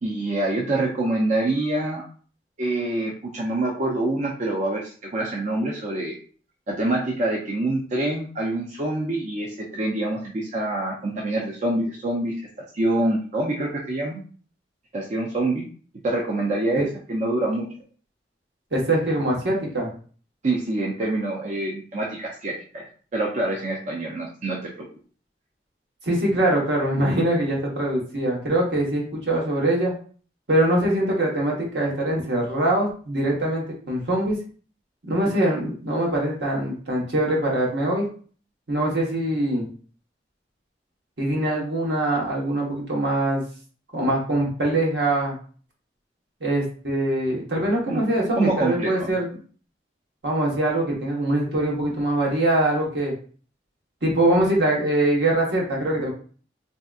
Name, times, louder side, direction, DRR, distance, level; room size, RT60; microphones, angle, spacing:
voice 1, 0.0-2.0 2.6-6.1 6.7-12.3 12.7-14.2 14.9-15.7 16.0-17.6 20.4-22.8 23.1-24.9 47.9-48.1 48.4-49.2, right 2 dB, 45° right, -2 dB, 0.5 m, -26 dB
voice 2, 18.7-19.9 26.0-29.9 30.5-34.4 35.1-38.1 38.7-39.7 41.2-43.4 43.9-45.4 46.4-49.2 50.2-53.1 54.0-56.1, right 1 dB, 75° right, -2 dB, 1.1 m, -23 dB
3.4 x 2.7 x 2.4 m, 0.42 s
head